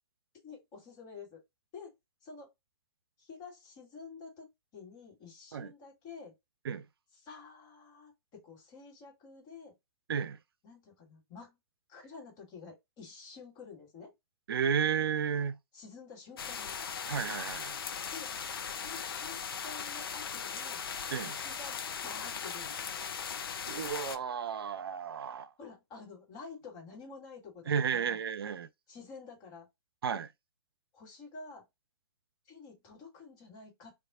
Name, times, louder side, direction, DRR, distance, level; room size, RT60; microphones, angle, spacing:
voice 1, 0.4-1.4 1.7-1.9 2.2-2.5 3.2-4.5 4.7-6.3 7.2-9.7 10.6-11.6 11.9-14.1 15.7-16.8 18.1-18.3 18.7-20.8 21.2-23.0 25.6-28.2 28.9-29.7 30.9-31.7 32.5-33.9, left 4 dB, 30° left, 1.3 m, -50 dB
voice 2, 14.5-15.6 17.1-17.8 21.1-21.3 23.7-25.5 27.7-28.7 30.0-30.3, right 7 dB, 65° right, 0.4 m, -32 dB
sound 1, 16.4-24.2, left 6 dB, 65° left, 0.5 m, -38 dB
2.3 x 2.0 x 3.6 m
figure-of-eight pair, 115°, 13 cm